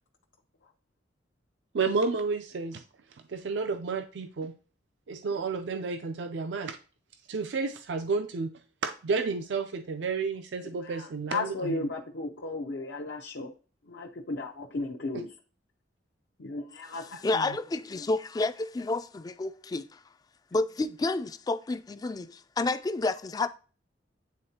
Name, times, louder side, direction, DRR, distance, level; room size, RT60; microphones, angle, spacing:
voice 1, 1.7-2.8 3.3-4.5 5.1-6.8 7.3-8.5 8.8-11.8 17.3-17.4, right 4 dB, 75° right, 0.4 m, -31 dB
voice 2, 10.8-13.5 13.9-15.3 16.4-17.4, left 3 dB, 70° left, 0.6 m, -35 dB
voice 3, 17.2-20.0 20.5-23.5, left 3 dB, 20° left, 0.3 m, -30 dB
9.4 x 3.6 x 2.8 m
head